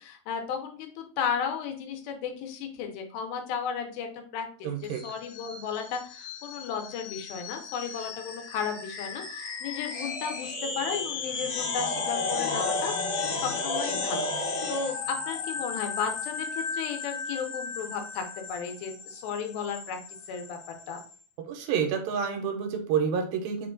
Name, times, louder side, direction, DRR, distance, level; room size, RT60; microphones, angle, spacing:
voice 1, 0.0-20.0 20.3-20.6 20.9-21.0, left 6 dB, 90° left, 4 dB, 2.7 m, -34 dB
voice 2, 4.6-5.0 21.5-23.7, right 7 dB, 80° right, 4 dB, 2.4 m, -28 dB
sound 1, 4.9-21.2, left 3 dB, 75° left, 2.8 m, -34 dB
5.8 x 2.3 x 3.8 m, 0.43 s
omnidirectional pair, 4.1 m